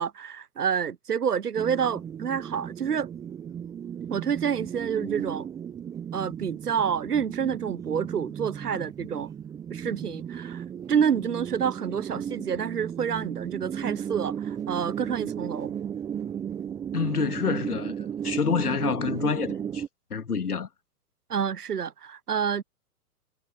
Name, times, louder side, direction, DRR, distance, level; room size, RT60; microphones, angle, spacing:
voice 1, 0.0-3.1 4.1-5.5 6.1-9.3 9.7-15.7 21.3-22.6, right 7 dB, 85° right, 0.8 m, -28 dB
sound 1, 1.6-19.9, right 8 dB, 10° right, 0.6 m, -35 dB
voice 2, 16.9-19.8 20.1-20.7, left 6 dB, 75° left, 2.1 m, -28 dB
figure-of-eight pair, 115°, 45 cm